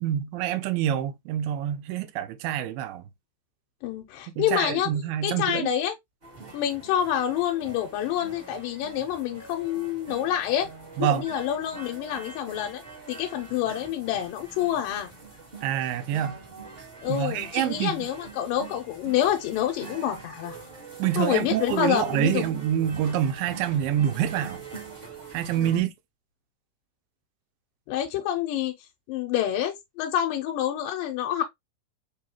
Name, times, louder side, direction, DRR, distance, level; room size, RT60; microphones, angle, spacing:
voice 1, 0.0-3.0 4.4-5.7 11.0-11.3 15.6-16.4 17.1-18.1 21.0-24.6 25.3-25.9, right 10 dB, 90° right, 2.3 m, -26 dB
voice 2, 3.8-4.9 5.2-5.9 6.5-10.7 11.0-12.8 13.1-15.1 17.0-20.5 21.2-22.5 25.6-25.9 27.9-28.7 29.1-31.4, left 11 dB, 85° left, 2.2 m, -27 dB
sound 1, 6.2-25.8, right 4 dB, 35° right, 0.9 m, -44 dB
5.3 x 2.3 x 2.9 m
omnidirectional pair, 3.9 m